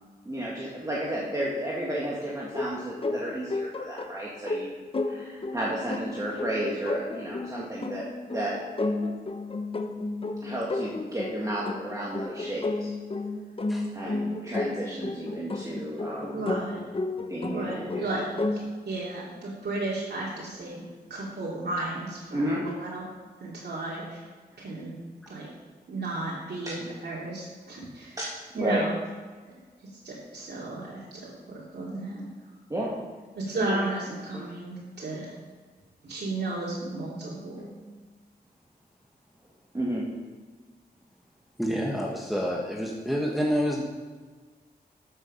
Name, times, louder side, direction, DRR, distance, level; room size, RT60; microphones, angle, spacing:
voice 1, 0.3-8.0 8.3-8.5 10.4-12.9 13.9-16.5 17.3-18.2 22.3-22.6 24.0-24.1 26.7-26.8 28.2-28.8 32.7-32.9 33.5-33.8 34.1-34.4 39.7-40.1, right 1 dB, 20° right, -5 dB, 1.8 m, -32 dB
sound 1, 2.5-18.6, left 2 dB, 35° left, 0.8 m, -33 dB
voice 2, 16.3-16.8 17.5-18.2 18.8-20.8 21.1-23.0 23.4-24.2 24.6-24.9 25.3-25.5 25.9-26.7 27.0-28.2 28.6-28.9 30.0-32.2 33.3-35.3 36.0-37.7, right 2 dB, 75° right, -6 dB, 2.7 m, -34 dB
voice 3, 41.6-43.8, equal, ahead, -2 dB, 1.1 m, -28 dB
13.0 x 6.9 x 5.6 m, 1.5 s
wide cardioid pair, 120°, 17 cm